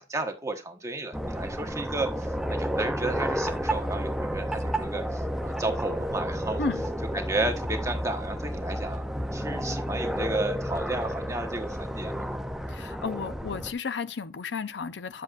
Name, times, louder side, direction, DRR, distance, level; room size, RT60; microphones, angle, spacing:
voice 1, 0.0-6.6 7.1-12.2, right 2 dB, 20° right, 1.2 m, -33 dB
sound 1, 1.1-13.7, equal, ahead, 0.5 m, -31 dB
voice 2, 12.7-15.2, left 4 dB, 85° left, 0.6 m, -33 dB
9.2 x 7.3 x 2.5 m
head